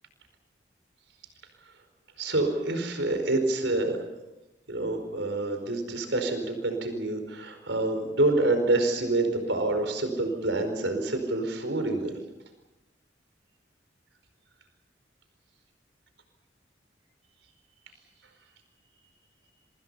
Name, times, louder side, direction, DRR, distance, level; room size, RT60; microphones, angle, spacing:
voice 1, 2.2-4.0 4.7-12.2, right 2 dB, 85° right, 7 dB, 4.9 m, -27 dB
26.5 x 25.5 x 5.6 m, 0.99 s
head